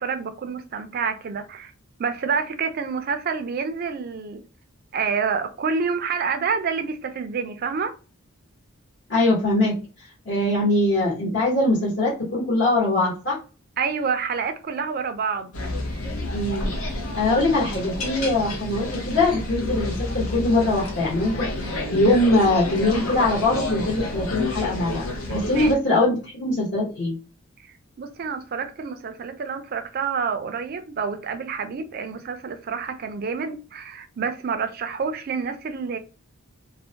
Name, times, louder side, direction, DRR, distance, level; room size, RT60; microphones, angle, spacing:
voice 1, 0.0-1.7 2.0-4.4 4.9-7.9 13.8-15.5 25.5-25.7 27.6-36.0, right 5 dB, 45° right, 0.3 m, -28 dB
voice 2, 9.1-9.8 10.2-13.4 16.3-16.7 17.1-27.2, left 2 dB, 55° left, 1.0 m, -22 dB
sound 1, 15.5-25.7, left 2 dB, 85° left, 0.7 m, -30 dB
2.4 x 2.0 x 2.8 m
head